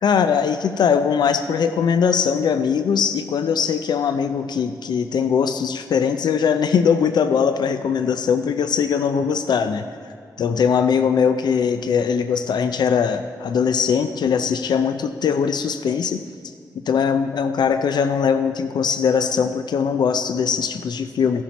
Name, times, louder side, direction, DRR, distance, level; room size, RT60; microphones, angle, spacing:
voice 1, 0.0-9.8 10.4-16.2 16.8-21.4, left 6 dB, 80° left, 10 dB, 0.4 m, -20 dB
15.5 x 7.2 x 4.1 m, 2.3 s
wide cardioid pair, 110°, 7 cm